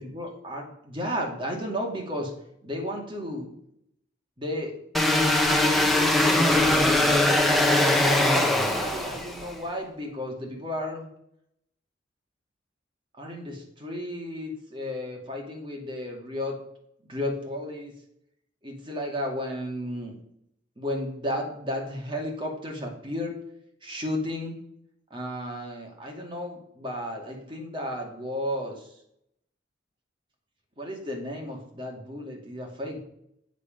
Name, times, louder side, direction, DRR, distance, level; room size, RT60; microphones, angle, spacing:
voice 1, 0.1-2.3 2.6-3.5 4.4-4.7 5.4-7.2 7.5-11.0 13.2-16.6 17.1-17.9 18.6-20.1 20.8-23.3 23.8-24.5 25.1-28.9 30.8-33.0, left 1 dB, 25° right, 0 dB, 2.3 m, -33 dB
sound 1, 4.9-9.5, left 1 dB, ahead, 1.0 m, -21 dB
8.4 x 7.0 x 5.2 m, 0.74 s
head